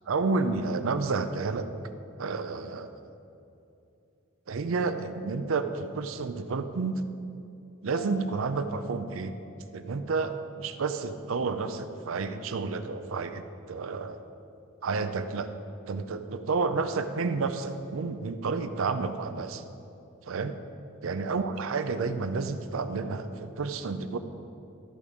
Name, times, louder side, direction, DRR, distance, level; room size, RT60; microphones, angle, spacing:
voice 1, 0.1-1.7 2.2-2.9 4.5-7.0 7.8-9.3 9.7-14.2 14.8-15.5 15.9-19.6 20.3-20.6 21.0-24.2, right 4 dB, 80° right, 10 dB, 0.5 m, -30 dB
sound 1, 7.9-11.2, left 6 dB, 25° left, 0.5 m, -50 dB
13.5 x 5.2 x 4.9 m, 2.7 s
head